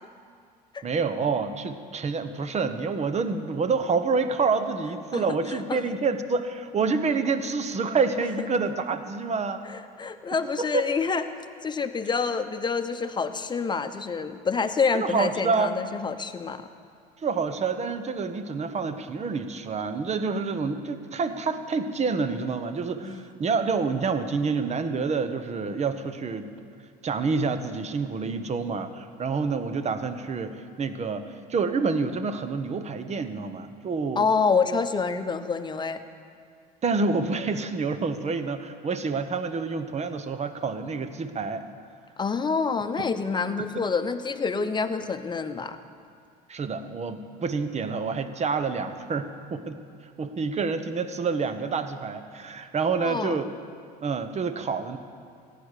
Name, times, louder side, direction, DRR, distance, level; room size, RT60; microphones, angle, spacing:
voice 1, 0.8-9.6 10.6-10.8 14.9-15.7 17.2-26.5 27.0-34.3 36.8-41.6 43.0-43.1 43.6-43.7 46.5-49.8 50.2-53.5 54.0-55.0, right 4 dB, 35° right, 10 dB, 1.1 m, -28 dB
voice 2, 9.6-11.2 11.6-16.7 23.0-23.2 34.2-36.0 42.2-45.8 53.0-53.4, left 5 dB, 25° left, 8 dB, 1.0 m, -27 dB
15.0 x 10.0 x 6.6 m, 2.2 s
supercardioid pair, 80°, 20 cm